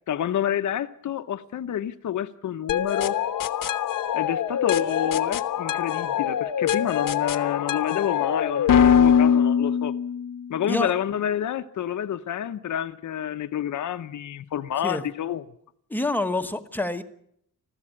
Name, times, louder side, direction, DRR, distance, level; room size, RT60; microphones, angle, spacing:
voice 1, 0.1-3.2 4.1-9.9 10.5-15.4, left 10 dB, 65° left, 0.9 m, -28 dB
sound 1, 2.7-10.5, left 8 dB, 80° left, 1.1 m, -23 dB
voice 2, 15.9-17.0, left 1 dB, 5° left, 1.1 m, -27 dB
21.0 x 15.0 x 9.9 m
wide cardioid pair, 170°, 32 cm